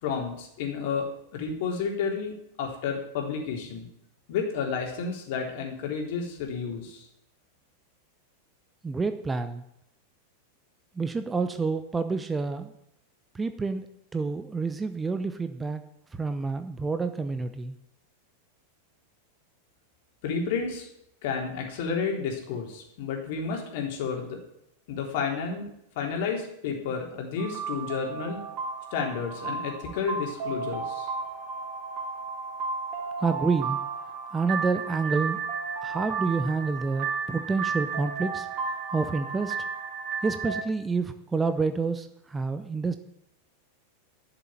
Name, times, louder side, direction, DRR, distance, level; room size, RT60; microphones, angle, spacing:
voice 1, 0.0-2.3 2.6-3.9 4.3-7.1 20.2-20.9 21.2-24.4 24.9-25.7 26.0-28.4 28.9-31.1, left 5 dB, 50° left, 1 dB, 3.6 m, -31 dB
voice 2, 8.8-9.6 10.9-12.7 13.3-13.9 14.1-15.8 16.1-17.8 33.2-33.8 34.3-35.4 35.8-38.5 38.9-39.6 40.2-43.0, right 4 dB, 15° right, 11 dB, 0.8 m, -28 dB
sound 1, 27.4-40.6, right 5 dB, 35° right, 3.7 m, -33 dB
12.0 x 7.5 x 8.9 m, 0.77 s
figure-of-eight pair, 90°, 0 cm